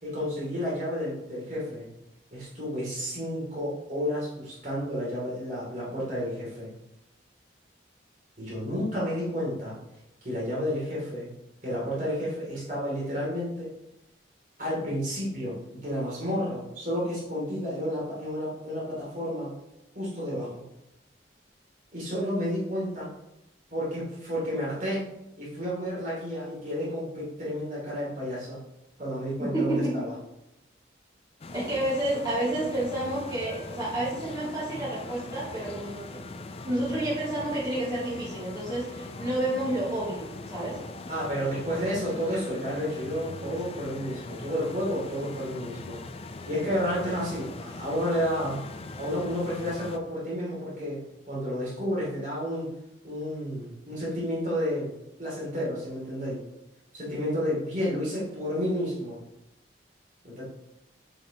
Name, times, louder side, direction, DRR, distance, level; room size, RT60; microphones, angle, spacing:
voice 1, 0.0-1.9 2.3-6.7 8.4-9.8 10.2-11.3 11.6-13.7 14.6-19.5 19.9-20.6 21.9-23.1 23.7-25.1 25.4-28.6 29.0-30.1 41.1-46.0 46.4-48.6 49.0-52.7 53.0-54.9 55.2-56.4 56.9-59.2 60.2-60.4, equal, 45° right, -6 dB, 2.6 m, -31 dB
voice 2, 29.4-30.0 31.5-36.2 36.6-40.8, right 1 dB, 20° right, -10 dB, 2.6 m, -30 dB
sound 1, 31.4-50.0, left 3 dB, 35° left, 0.4 m, -41 dB
7.4 x 5.7 x 2.9 m, 0.87 s
head